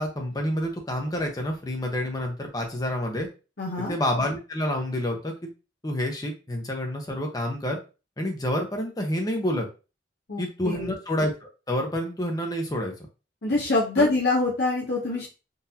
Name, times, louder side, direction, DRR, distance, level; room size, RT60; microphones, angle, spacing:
voice 1, 0.0-3.3 3.9-5.5 5.8-7.8 8.2-9.7 10.4-12.9 14.0-14.1, left 1 dB, 20° left, 2 dB, 0.7 m, -28 dB
voice 2, 3.6-3.9 10.3-10.9 13.4-15.3, left 2 dB, 55° left, -3 dB, 0.8 m, -25 dB
3.8 x 2.6 x 2.7 m, 0.32 s
head